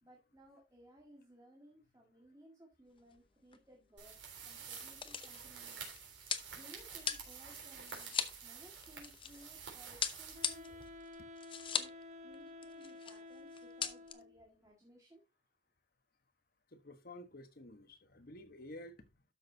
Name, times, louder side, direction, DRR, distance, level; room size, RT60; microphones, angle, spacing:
voice 1, 0.0-4.2 4.4-5.9 6.6-10.8 11.8-11.9 12.2-15.2, equal, 20° right, 1.9 m, -60 dB
sound 1, 3.0-3.3 3.5-3.6 4.4-9.5 10.0-12.0 12.3-12.4 12.6-13.2 13.5-14.1, left 7 dB, 30° left, 0.7 m, -40 dB
sound 2, 4.0-11.1, right 6 dB, 85° right, 3.6 m, -50 dB
Wind instrument woodwind instrument, 10.3-14.5, left 2 dB, 40° right, 1.2 m, -52 dB
voice 2, 16.7-19.2, left 1 dB, 55° left, 1.3 m, -52 dB
12.5 x 6.3 x 2.8 m
head